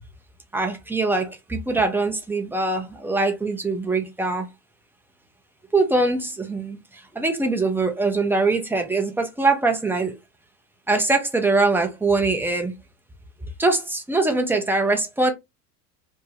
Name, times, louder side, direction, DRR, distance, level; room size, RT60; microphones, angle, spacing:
voice 1, 0.5-4.5 5.7-10.2 10.9-12.7 13.6-15.3, right 3 dB, 5° right, 0.6 m, -22 dB
3.4 x 2.1 x 2.8 m
figure-of-eight pair, 70°, 47 cm